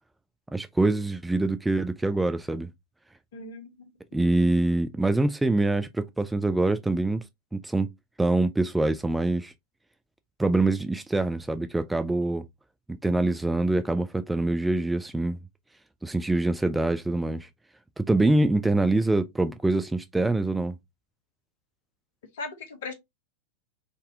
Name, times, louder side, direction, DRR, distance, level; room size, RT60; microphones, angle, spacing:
voice 1, 0.5-2.7 4.1-7.2 7.5-7.9 8.2-9.5 10.4-12.5 12.9-15.4 16.0-17.5 18.0-20.7, right 2 dB, 5° right, 0.3 m, -25 dB
voice 2, 3.3-3.7 22.3-22.9, left 3 dB, 55° left, 0.9 m, -37 dB
3.7 x 2.6 x 2.5 m
figure-of-eight pair, 90°, 0 cm